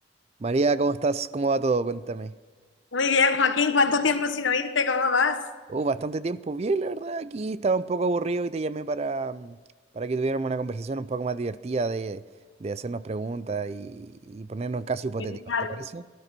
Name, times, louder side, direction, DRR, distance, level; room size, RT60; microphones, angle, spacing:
voice 1, 0.4-2.3 5.7-9.6 9.9-12.2 12.6-15.4 15.7-16.0, right 3 dB, 35° right, 0.4 m, -28 dB
voice 2, 2.9-5.4 15.5-15.8, left 4 dB, 85° left, 1.1 m, -23 dB
18.0 x 12.5 x 6.0 m
head